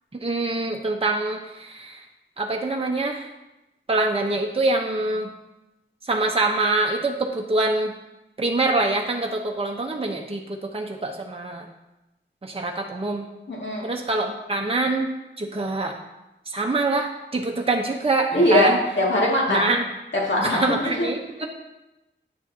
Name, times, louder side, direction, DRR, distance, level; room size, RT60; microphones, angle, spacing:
voice 1, 0.1-2.0 2.4-3.3 3.9-5.3 6.1-7.9 8.4-11.6 12.4-13.3 13.8-15.1 15.4-15.9 16.5-18.8 19.5-19.8 20.4-21.5, right 2 dB, 30° right, 1 dB, 0.9 m, -25 dB
voice 2, 13.5-13.9 18.3-19.7 20.3-21.1, left 1 dB, 70° left, -4 dB, 2.3 m, -21 dB
9.4 x 7.1 x 2.8 m, 0.96 s
wide cardioid pair, 50°, 20 cm